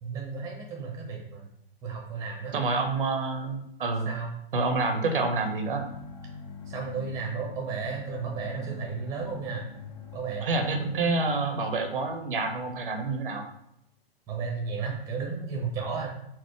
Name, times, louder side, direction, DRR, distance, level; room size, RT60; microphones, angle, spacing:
voice 1, 0.0-1.5 1.8-2.5 4.1-4.3 6.7-9.7 10.1-11.2 14.3-16.1, right 5 dB, 10° right, 0 dB, 0.6 m, -34 dB
voice 2, 2.5-4.1 4.5-5.8 10.4-13.5, right 3 dB, 60° right, 5 dB, 0.7 m, -28 dB
sound 1, 5.7-13.5, left 4 dB, 40° left, 0.5 m, -45 dB
4.4 x 2.0 x 4.6 m, 0.75 s
figure-of-eight pair, 120°, 30 cm